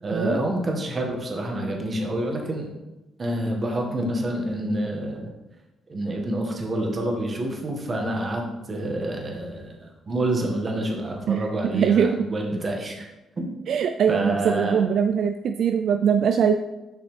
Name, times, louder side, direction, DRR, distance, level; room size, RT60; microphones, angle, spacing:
voice 1, 0.0-2.7 3.2-5.3 5.9-13.1 13.4-13.5 14.1-14.9, right 1 dB, 35° right, 1 dB, 1.5 m, -27 dB
voice 2, 11.7-12.2 13.7-16.5, right 7 dB, 65° right, 7 dB, 0.3 m, -21 dB
7.2 x 5.6 x 3.3 m, 1.0 s
cardioid pair, 90°, 0 cm